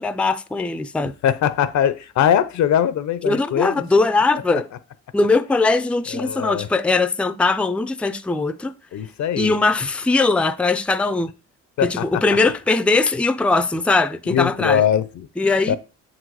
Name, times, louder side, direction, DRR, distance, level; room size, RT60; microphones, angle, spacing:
voice 1, 0.0-1.1 3.2-4.7 5.1-8.7 9.4-11.3 11.8-14.8 15.4-15.8, left 3 dB, 5° left, 0.4 m, -20 dB
voice 2, 1.2-3.8 4.5-4.6 6.1-6.7 8.9-9.5 11.8-12.2 14.3-15.3 15.7-15.8, left 9 dB, 65° left, 0.7 m, -21 dB
7.4 x 3.9 x 4.7 m
cardioid pair, 90°, 30 cm